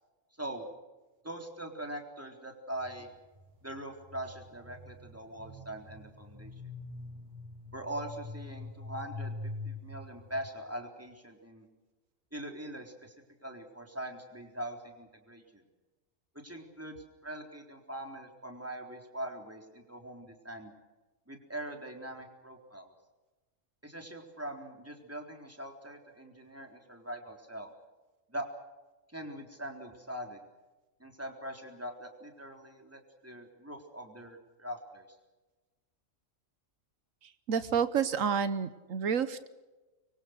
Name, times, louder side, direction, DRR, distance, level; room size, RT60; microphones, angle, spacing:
voice 1, 1.2-3.1 3.6-6.5 7.7-9.4 9.6-11.7 12.3-13.1 13.4-15.6 16.4-17.0 17.2-20.7 21.3-22.9 23.8-27.7 28.3-28.5 29.1-30.4 31.0-35.1, right 1 dB, 10° right, 2 dB, 3.9 m, -42 dB
sound 1, 2.7-10.5, left 2 dB, 35° right, 8.3 m, -44 dB
voice 2, 37.5-39.5, right 7 dB, 85° right, 13 dB, 1.4 m, -29 dB
25.0 x 24.0 x 6.5 m, 1.2 s
omnidirectional pair, 1.3 m